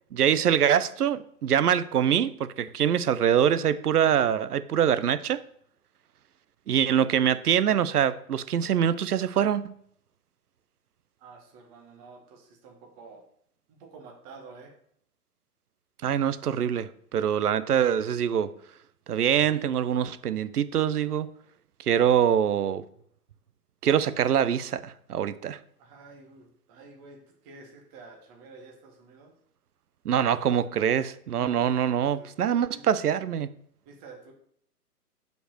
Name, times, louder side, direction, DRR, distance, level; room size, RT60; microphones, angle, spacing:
voice 1, 0.1-5.4 6.7-9.7 16.0-18.5 19.1-21.3 21.8-22.8 23.8-25.6 30.0-33.5, right 9 dB, 75° right, 0.7 m, -24 dB
voice 2, 11.2-13.2 13.7-14.7 25.8-29.3 32.0-32.3 32.7-32.9 33.8-34.3, right 4 dB, 25° right, 1.2 m, -49 dB
5.4 x 4.5 x 6.3 m
hypercardioid pair, 140°, 47 cm